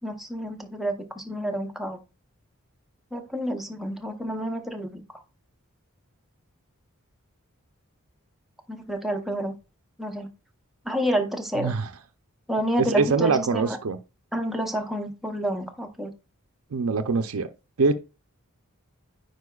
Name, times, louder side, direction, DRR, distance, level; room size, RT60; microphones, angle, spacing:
voice 1, 0.0-2.0 3.1-5.0 8.7-9.5 10.0-10.3 10.9-11.7 12.5-13.8 14.3-16.1, equal, ahead, 0.7 m, -29 dB
voice 2, 11.6-11.9 12.8-14.0 16.7-17.5 17.8-17.9, right 4 dB, 75° right, 0.6 m, -23 dB
9.5 x 4.6 x 2.3 m
head